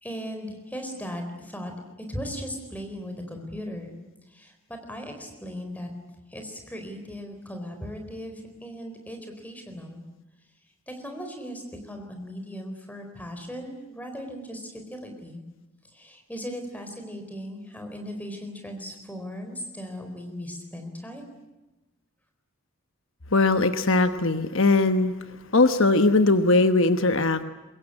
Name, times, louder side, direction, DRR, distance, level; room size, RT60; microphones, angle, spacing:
voice 1, 0.0-1.7 2.1-3.9 4.3-5.9 6.3-10.0 10.9-15.4 15.9-21.3, equal, 5° left, 4 dB, 4.2 m, -37 dB
voice 2, 23.3-25.1 25.5-27.4, left 2 dB, 60° left, 9 dB, 1.2 m, -20 dB
24.0 x 21.0 x 9.9 m, 1.1 s
head